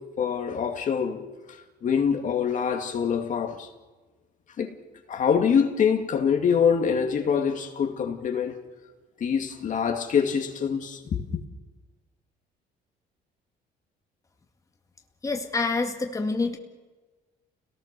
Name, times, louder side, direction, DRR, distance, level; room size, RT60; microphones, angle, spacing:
voice 1, 0.0-3.7 4.6-4.8 5.1-8.6 9.2-11.2, left 7 dB, 50° left, 2.4 m, -25 dB
voice 2, 15.2-16.6, left 3 dB, 20° left, 2.0 m, -27 dB
29.0 x 18.0 x 6.9 m
cardioid pair, 110°, 17 cm